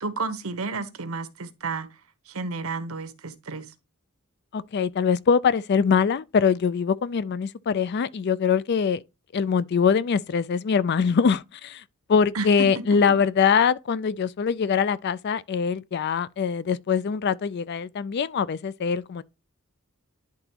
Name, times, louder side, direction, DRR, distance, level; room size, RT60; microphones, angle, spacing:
voice 1, 0.0-1.9 2.3-3.7 12.3-13.2, right 3 dB, 85° right, 1.0 m, -32 dB
voice 2, 4.5-9.0 9.3-11.8 12.1-19.2, left 6 dB, 50° left, 0.4 m, -23 dB
10.5 x 3.9 x 2.9 m
head